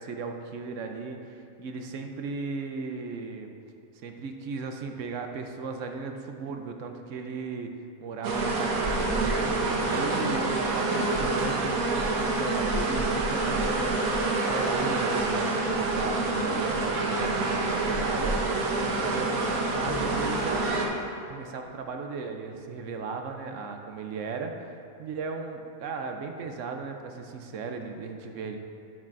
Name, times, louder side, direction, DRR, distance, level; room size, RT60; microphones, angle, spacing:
voice 1, 0.0-3.5 4.0-7.7 8.0-18.4 18.8-20.7 21.3-28.6, right 4 dB, 70° right, 5 dB, 0.9 m, -36 dB
sound 1, 8.2-20.9, right 2 dB, 85° right, 1.3 m, -27 dB
sound 2, 19.9-22.0, left 6 dB, 70° left, 0.9 m, -43 dB
10.0 x 7.3 x 2.5 m, 2.6 s
omnidirectional pair, 1.4 m